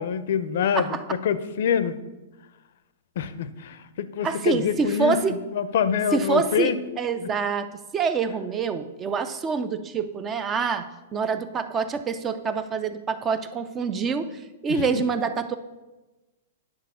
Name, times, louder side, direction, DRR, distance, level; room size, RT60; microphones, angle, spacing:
voice 1, 0.0-1.9 3.2-6.8 7.2-7.3 14.7-15.0, left 8 dB, 55° left, 14 dB, 0.5 m, -26 dB
voice 2, 4.2-5.4 6.1-15.6, right 5 dB, 15° right, 10 dB, 0.3 m, -26 dB
9.6 x 4.2 x 6.9 m, 1.1 s
hypercardioid pair, 175°, 0 cm